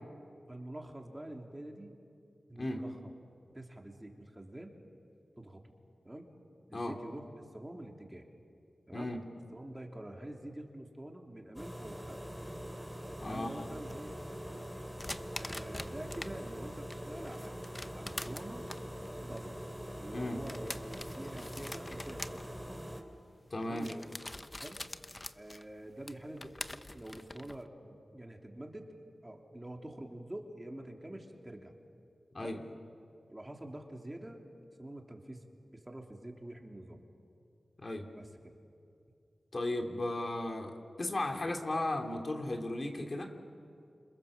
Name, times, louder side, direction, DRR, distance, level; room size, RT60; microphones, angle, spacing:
voice 1, 0.5-2.0 2.5-3.1 3.5-4.7 5.4-5.6 6.0-6.3 6.7-8.3 8.9-9.1 9.5-12.2 13.2-14.2 15.4-18.8 19.2-19.6 20.0-22.4 23.6-24.1 24.5-24.8 25.3-28.9 29.2-31.7 32.4-32.6 33.3-34.4 34.8-35.5 35.7-37.0 38.1-38.6 41.3-41.5, right 1 dB, 20° right, 2 dB, 3.2 m, -46 dB
sound 1, 11.6-23.0, equal, 5° left, 3.3 m, -43 dB
voice 2, 13.2-13.6 20.1-20.4 23.5-23.9 32.3-32.6 37.8-38.1 39.5-43.3, left 1 dB, 45° left, 3 dB, 2.9 m, -35 dB
sound 2, 13.6-16.3 16.7-27.7, left 1 dB, 25° left, 0.9 m, -46 dB
29.5 x 27.5 x 7.4 m, 2.5 s
wide cardioid pair, 65°, 0 cm